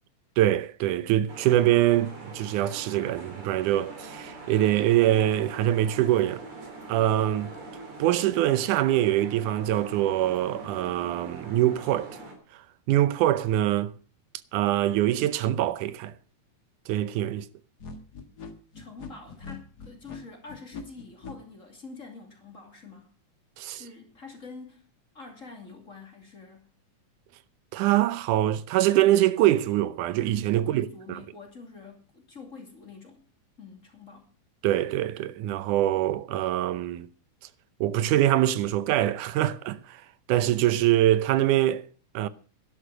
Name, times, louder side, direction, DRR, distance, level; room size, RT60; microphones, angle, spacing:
voice 1, 0.4-6.4 6.9-7.5 8.0-12.2 12.9-13.9 14.5-16.1 16.9-17.5 23.6-23.8 27.7-31.2 34.6-37.1 37.8-40.0 40.3-41.8 42.1-42.3, right 13 dB, 85° right, 2.3 m, -24 dB
sound 1, 1.3-12.4, right 3 dB, 45° right, 3.9 m, -43 dB
sound 2, 17.8-21.3, left 4 dB, 45° left, 1.6 m, -42 dB
voice 2, 18.7-23.1 23.6-24.9 25.1-26.7 30.5-33.2 33.6-34.3, left 4 dB, 25° left, 2.7 m, -46 dB
11.5 x 11.5 x 6.2 m
omnidirectional pair, 3.5 m